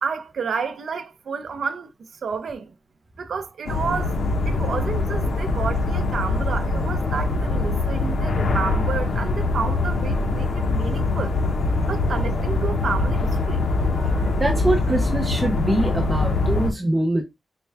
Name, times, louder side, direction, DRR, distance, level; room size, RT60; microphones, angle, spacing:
voice 1, 0.0-1.9 2.2-2.7 3.2-4.2 4.5-11.3 11.9-13.6 13.8-14.3, right 5 dB, 80° right, 0.5 m, -30 dB
sound 1, 3.7-16.7, left 3 dB, 80° left, 0.7 m, -23 dB
voice 2, 14.4-17.2, right 1 dB, 20° right, 0.5 m, -23 dB
4.3 x 2.2 x 3.3 m
wide cardioid pair, 175°, 0 cm